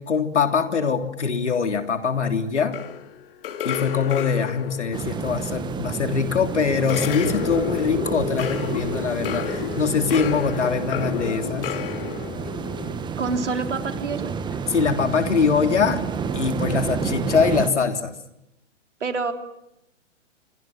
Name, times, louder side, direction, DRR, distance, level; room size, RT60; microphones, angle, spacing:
voice 1, 0.0-2.8 3.6-11.7 14.7-16.0 16.3-18.1, left 5 dB, 70° left, 6 dB, 3.4 m, -23 dB
sound 1, 2.7-6.3 6.9-12.9, left 8 dB, 50° left, 3.1 m, -31 dB
sound 2, 4.9-17.7, right 6 dB, 10° right, 1.6 m, -30 dB
voice 2, 13.2-14.3 19.0-19.3, right 4 dB, 70° right, 5 dB, 3.8 m, -27 dB
27.5 x 25.0 x 7.4 m, 0.84 s
figure-of-eight pair, 120°, 36 cm